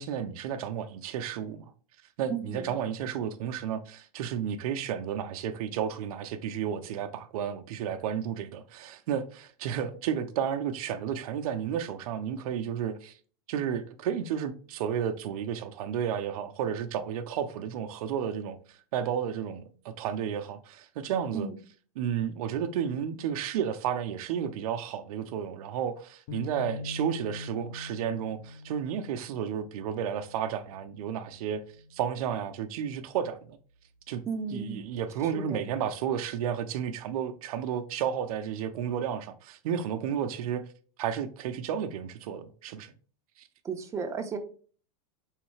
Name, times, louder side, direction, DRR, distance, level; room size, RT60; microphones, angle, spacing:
voice 1, 0.0-1.6 2.2-13.1 13.5-21.5 22.0-31.6 31.9-33.6 34.1-34.2 34.5-40.6 41.0-42.9 43.4-43.5, right 8 dB, 70° right, 0.5 m, -32 dB
voice 2, 2.3-2.7 21.3-21.6 34.3-34.9 35.3-35.7 43.6-44.4, right 5 dB, 15° right, 0.5 m, -34 dB
sound 1, 26.3-32.7, left 2 dB, 50° left, 0.6 m, -44 dB
3.6 x 3.1 x 3.1 m
supercardioid pair, 125°, 19 cm